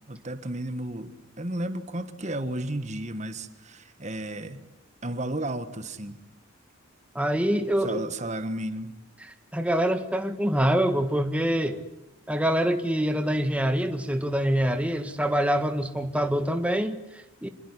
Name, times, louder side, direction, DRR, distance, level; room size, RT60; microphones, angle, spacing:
voice 1, 0.1-4.6 5.0-6.2 7.8-8.9, right 1 dB, 35° right, 11 dB, 1.4 m, -33 dB
voice 2, 7.1-8.0 9.2-11.8 12.3-17.5, equal, 5° right, 7 dB, 1.5 m, -25 dB
26.5 x 22.0 x 9.9 m, 0.88 s
head